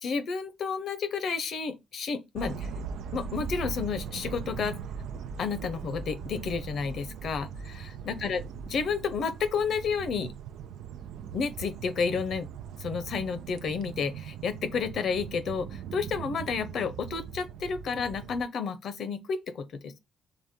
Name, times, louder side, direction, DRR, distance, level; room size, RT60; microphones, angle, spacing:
voice 1, 0.0-2.7 3.1-4.8 5.4-10.3 11.3-12.5 12.8-20.0, left 5 dB, 65° left, 0.7 m, -31 dB
sound 1, 2.4-18.4, right 7 dB, 85° right, 0.4 m, -40 dB
4.0 x 3.5 x 3.6 m
cardioid pair, 90°, 0 cm